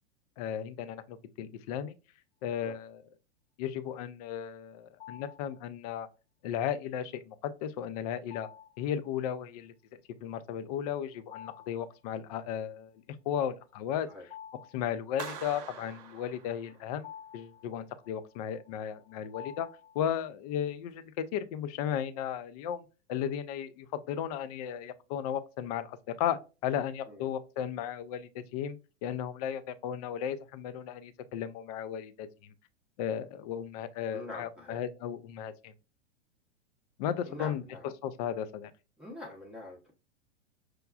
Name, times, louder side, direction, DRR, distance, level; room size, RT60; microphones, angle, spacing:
voice 1, 0.4-1.9 2.4-3.0 3.6-6.1 6.4-8.5 8.8-9.7 10.2-12.9 13.3-14.1 14.7-17.1 17.3-19.7 19.9-28.8 29.0-32.5 33.0-35.7 37.0-37.6 38.0-38.7, left 9 dB, 35° left, 0.5 m, -35 dB
sound 1, 5.0-5.6 8.3-8.9 11.2-11.9 12.3-12.4 13.8-15.4 16.3-20.2, left 9 dB, 65° left, 1.3 m, -50 dB
Clapping, 15.2-17.1, right 7 dB, 30° right, 0.6 m, -44 dB
voice 2, 34.1-34.8 37.3-37.9 39.0-39.8, left 2 dB, 5° right, 0.8 m, -44 dB
6.1 x 2.2 x 2.3 m
figure-of-eight pair, 100°, 35 cm